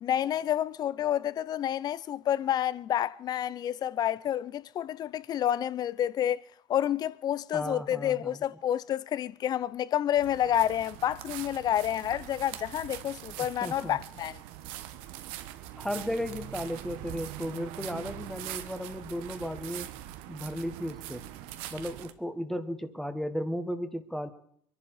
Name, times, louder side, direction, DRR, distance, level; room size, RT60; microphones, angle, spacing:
voice 1, 0.0-6.4 6.7-14.4, left 11 dB, 45° left, 0.6 m, -29 dB
voice 2, 7.5-8.4 13.4-14.0 15.8-19.9 20.3-21.3 21.7-24.3, equal, 5° left, 1.4 m, -35 dB
sound 1, 10.2-22.1, right 13 dB, 75° right, 1.0 m, -42 dB
23.0 x 11.0 x 4.8 m
supercardioid pair, 85°, 9 cm